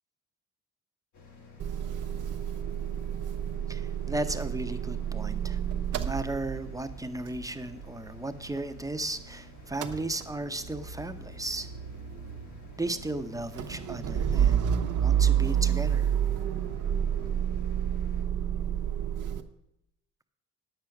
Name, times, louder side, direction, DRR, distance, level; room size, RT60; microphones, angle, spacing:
sound 1, 1.1-18.2, left 3 dB, 70° left, 2.5 m, -52 dB
Motor vehicle (road) / Engine starting / Idling, 1.6-9.3 9.6-19.4, right 9 dB, 85° right, 0.9 m, -30 dB
voice 1, 3.7-5.6 5.9-11.7 12.8-14.7 15.0-16.1, right 2 dB, 10° right, 9 dB, 0.8 m, -35 dB
9.6 x 7.9 x 5.9 m, 0.81 s
cardioid pair, 90°, 30 cm